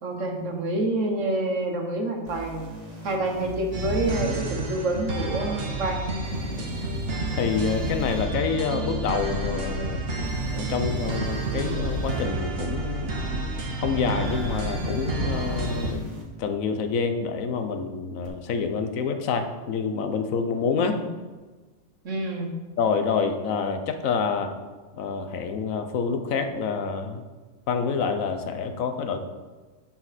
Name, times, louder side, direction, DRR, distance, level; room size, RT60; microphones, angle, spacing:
voice 1, 0.0-2.7 3.0-6.0 20.7-21.0 22.0-22.5, right 2 dB, 70° right, 2 dB, 1.5 m, -27 dB
sound 1, 2.3-4.2 6.2-8.2 10.2-12.2 14.2-16.2 18.2-18.3, equal, 30° right, 1.5 m, -39 dB
sound 2, 3.7-15.9, right 2 dB, 50° right, 1.1 m, -30 dB
voice 2, 7.3-10.0 10.5-13.2 13.8-16.1 16.4-21.0 22.8-24.5 25.0-27.2 27.7-29.2, left 5 dB, 85° left, 7 dB, 1.2 m, -27 dB
12.0 x 4.4 x 4.1 m, 1.3 s
omnidirectional pair, 1.4 m